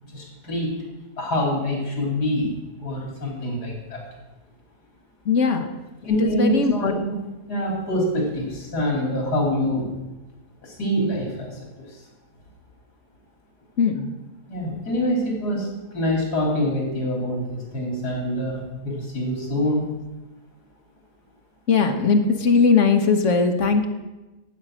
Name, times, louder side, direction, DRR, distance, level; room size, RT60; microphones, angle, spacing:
voice 1, 0.1-0.7 1.2-2.5 2.8-4.0 6.0-7.2 7.5-9.9 10.6-11.6 14.5-19.9, equal, 80° left, -1 dB, 4.1 m, -25 dB
voice 2, 5.3-5.7 6.1-6.9 13.8-14.1 21.7-23.9, left 5 dB, 50° left, 5 dB, 1.4 m, -19 dB
12.0 x 8.6 x 6.3 m, 1.1 s
omnidirectional pair, 1.7 m